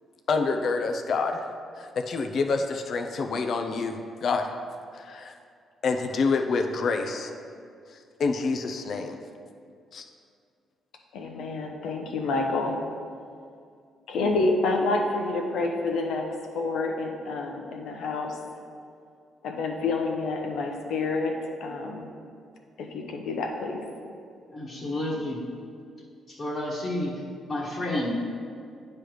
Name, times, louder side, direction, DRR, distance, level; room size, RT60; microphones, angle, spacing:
voice 1, 0.3-1.5 1.8-4.5 4.9-5.3 5.8-7.3 8.2-9.2 9.9-10.0, left 4 dB, 60° left, 4 dB, 0.6 m, -27 dB
voice 2, 11.1-12.8 14.1-16.3 16.5-18.4 19.4-22.1 22.8-23.8, left 3 dB, 75° left, 2 dB, 1.0 m, -28 dB
voice 3, 24.5-25.4 26.3-27.1 27.5-28.1, left 1 dB, 40° left, -6 dB, 1.4 m, -30 dB
9.5 x 3.3 x 6.2 m, 2.3 s
cardioid pair, 90°, 0 cm